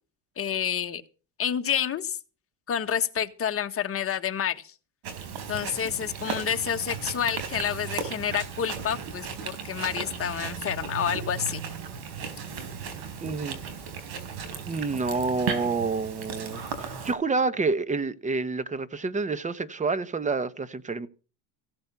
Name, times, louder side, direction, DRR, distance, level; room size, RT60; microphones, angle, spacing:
voice 1, 0.4-1.0 1.4-2.2 2.7-4.7 5.5-9.3 9.6-11.6, left 8 dB, 35° left, 1.6 m, -29 dB
Chewing mastication, 5.0-17.1, right 6 dB, 60° right, 4.0 m, -36 dB
voice 2, 13.2-13.6 14.6-21.1, right 4 dB, 15° right, 1.1 m, -28 dB
16.0 x 8.7 x 7.0 m
cardioid pair, 115°, 41 cm